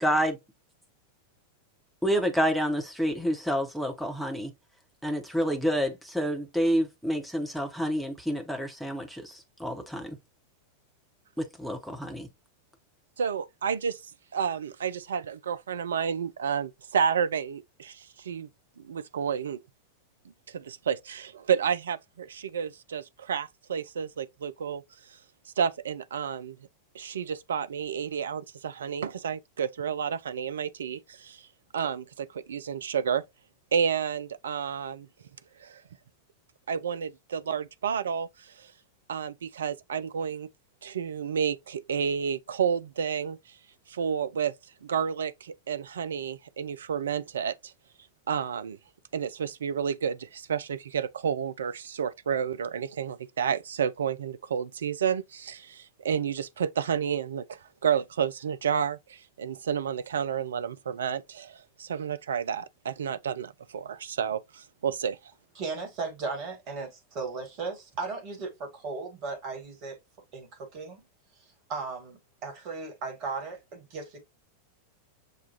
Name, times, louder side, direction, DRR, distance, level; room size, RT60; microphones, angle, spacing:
voice 1, 0.0-0.3 2.0-4.5 5.0-10.2 11.4-12.3, equal, ahead, 0.9 m, -28 dB
voice 2, 13.2-14.0 14.3-18.5 18.8-19.6 20.5-24.8 25.6-26.6 26.9-31.5 31.7-33.2 33.7-35.1 35.6-35.8 36.7-38.7 39.1-40.5 40.8-43.4 43.9-44.5 44.8-47.7 48.3-48.8 49.1-65.2, right 7 dB, 65° right, 0.3 m, -30 dB
voice 3, 65.6-70.0 70.3-71.0 71.7-74.2, right 4 dB, 40° right, 1.6 m, -36 dB
6.5 x 2.3 x 2.8 m
figure-of-eight pair, 90°, 0 cm